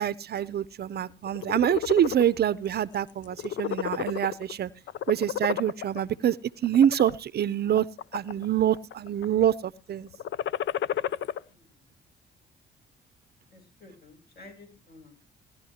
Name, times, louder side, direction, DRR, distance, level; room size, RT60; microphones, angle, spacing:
voice 1, 0.0-4.7 5.1-6.4 6.6-7.9 8.1-10.1, right 10 dB, 55° right, 0.6 m, -25 dB
sound 1, 1.3-2.2 2.7-2.9 3.2-4.5 4.9-6.0 6.6-7.1 7.7-8.4 8.7-9.2 10.1-11.4, left 10 dB, 65° left, 0.6 m, -31 dB
voice 2, 11.5-11.8 13.5-15.3, left 2 dB, 50° left, 6.7 m, -52 dB
18.0 x 12.0 x 2.8 m
cardioid pair, 90°, 20 cm